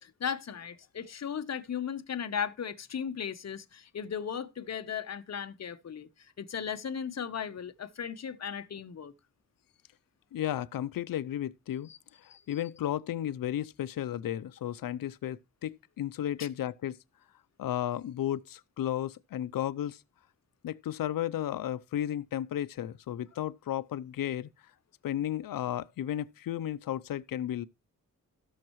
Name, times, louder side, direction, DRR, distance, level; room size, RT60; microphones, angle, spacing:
voice 1, 0.0-6.1 6.4-9.1 11.9-12.0 12.3-12.4 16.4-16.5, left 7 dB, 50° left, 0.9 m, -36 dB
voice 2, 10.3-11.9 12.5-17.0 17.6-20.0 20.6-24.5 25.0-27.6, left 11 dB, 90° left, 0.6 m, -33 dB
17.0 x 6.5 x 3.0 m
wide cardioid pair, 90°, 33 cm